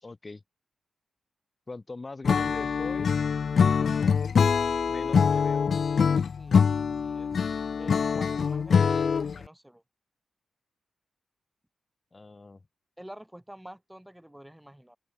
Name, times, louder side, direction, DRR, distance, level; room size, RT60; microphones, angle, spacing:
voice 1, 0.0-0.4 1.7-3.1 4.9-5.7 12.1-12.6, left 3 dB, 30° left, 2.8 m, -41 dB
Acoustic guitar / Strum, 2.2-9.4, left 6 dB, 60° left, 0.9 m, -24 dB
voice 2, 6.9-9.8 13.0-15.0, right 1 dB, 5° right, 7.3 m, -48 dB
open air
cardioid pair, 80°, 0 cm